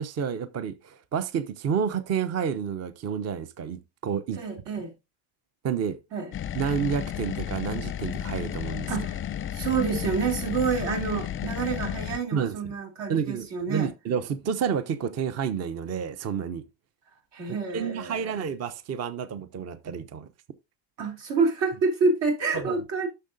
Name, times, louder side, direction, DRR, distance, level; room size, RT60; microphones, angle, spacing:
voice 1, 0.0-4.4 5.6-6.0 6.5-8.9 12.3-12.6 13.1-16.6 17.5-20.3 22.5-22.8, right 7 dB, 35° right, 0.7 m, -30 dB
voice 2, 4.3-4.9 6.1-6.3 8.9-9.2 9.5-13.9 17.3-18.4 21.0-23.1, right 4 dB, 60° right, 3.3 m, -28 dB
sound 1, 6.3-12.2, left 10 dB, 25° left, 0.5 m, -32 dB
10.0 x 6.7 x 2.6 m
cardioid pair, 120°, 48 cm